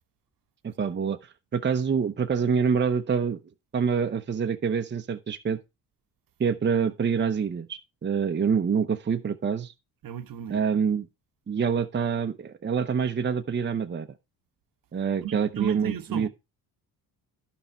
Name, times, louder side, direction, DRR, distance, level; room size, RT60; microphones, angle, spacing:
voice 1, 0.6-3.4 3.7-5.6 6.4-9.7 10.5-11.1 11.5-14.1 14.9-16.3, right 6 dB, 30° right, 0.8 m, -26 dB
voice 2, 10.0-10.6 15.2-16.3, right 11 dB, 55° right, 1.1 m, -35 dB
11.5 x 5.7 x 4.4 m
cardioid pair, 85°, 39 cm